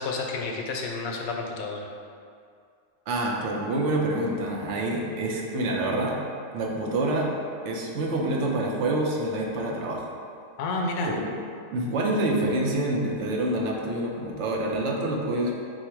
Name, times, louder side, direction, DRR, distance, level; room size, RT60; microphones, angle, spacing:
voice 1, 0.0-1.9 10.6-11.1, left 3 dB, 90° left, 0 dB, 1.0 m, -30 dB
voice 2, 3.1-6.2 6.5-7.3 7.6-10.1 11.0-11.3 11.7-15.5, right 1 dB, 65° right, -1 dB, 0.9 m, -27 dB
4.7 x 2.1 x 4.3 m, 2.3 s
omnidirectional pair, 1.4 m